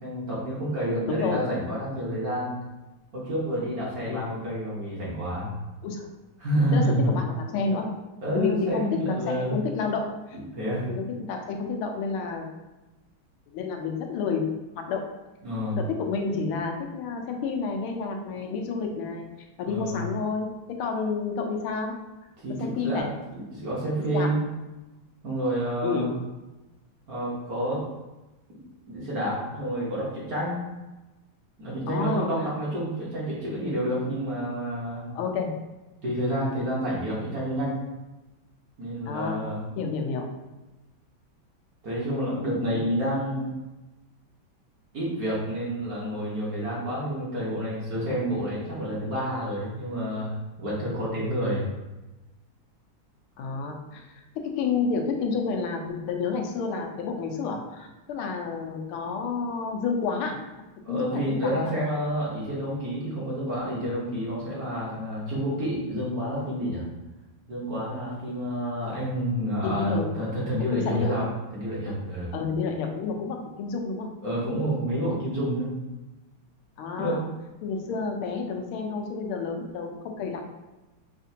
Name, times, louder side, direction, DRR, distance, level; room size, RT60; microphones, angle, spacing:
voice 1, 0.0-2.5 3.1-5.5 6.4-7.1 8.2-9.5 10.3-10.9 15.4-15.8 19.6-20.0 22.4-23.1 23.3-24.4 25.2-26.1 27.1-27.8 28.5-28.6 28.9-30.6 31.6-35.1 36.0-37.8 38.8-39.6 41.8-43.5 44.9-51.7 60.8-66.8 67.5-71.3 71.5-72.3 74.2-75.7 77.0-77.2, equal, 50° right, -6 dB, 1.4 m, -29 dB
voice 2, 1.1-1.4 4.1-4.3 5.8-6.1 6.7-7.9 8.3-10.4 10.9-12.5 13.5-14.5 14.8-15.0 15.8-19.3 19.6-21.9 22.5-23.1 24.1-24.3 25.8-26.1 31.9-32.3 35.1-35.5 39.1-39.4 39.8-40.3 42.7-42.8 53.4-60.4 60.9-61.7 69.6-70.1 70.6-71.2 72.3-74.1 76.8-77.3 77.6-80.5, left 4 dB, 90° left, 3 dB, 1.5 m, -30 dB
5.6 x 2.5 x 2.7 m, 1.1 s
omnidirectional pair, 2.3 m